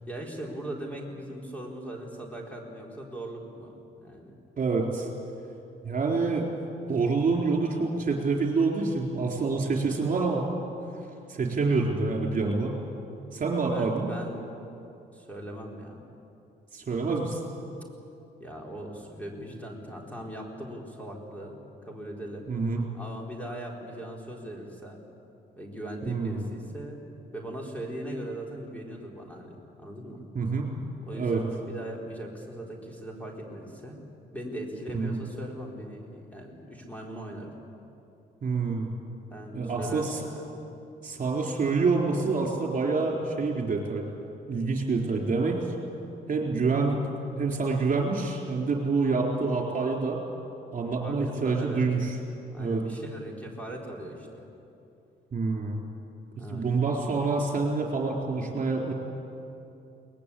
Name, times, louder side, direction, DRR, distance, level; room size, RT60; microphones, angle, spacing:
voice 1, 0.0-4.4 13.6-14.5 15.1-16.1 18.4-21.6 21.9-22.5 22.9-25.0 25.6-27.0 27.3-30.2 31.1-34.0 34.3-37.5 39.3-40.7 51.0-51.8 52.5-54.4 56.4-56.7, right 1 dB, 5° left, -1 dB, 4.0 m, -40 dB
voice 2, 4.6-5.1 5.8-6.5 6.9-10.5 11.3-12.8 13.3-14.1 16.7-17.4 22.5-22.8 26.1-26.4 30.3-30.7 31.1-31.4 34.9-35.2 38.4-38.9 39.5-40.2 41.0-44.0 44.5-45.7 46.3-47.1 47.4-50.2 50.7-52.2 52.6-52.8 55.3-55.8 56.5-58.9, right 4 dB, 40° right, 0 dB, 4.2 m, -27 dB
22.0 x 20.0 x 8.6 m, 2.7 s
cardioid pair, 90°, 20 cm